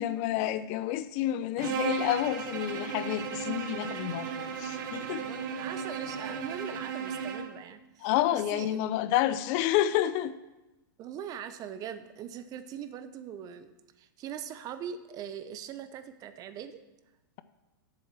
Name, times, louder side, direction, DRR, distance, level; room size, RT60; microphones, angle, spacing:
voice 1, 0.0-5.3 8.0-10.4, left 12 dB, 45° left, 14 dB, 0.5 m, -29 dB
Bowed string instrument, 1.6-7.6, right 6 dB, 60° right, 1.1 m, -35 dB
voice 2, 5.2-8.9 11.0-16.8, right 8 dB, 30° right, 11 dB, 0.7 m, -41 dB
7.7 x 7.1 x 7.4 m, 1.0 s
hypercardioid pair, 125°, 12 cm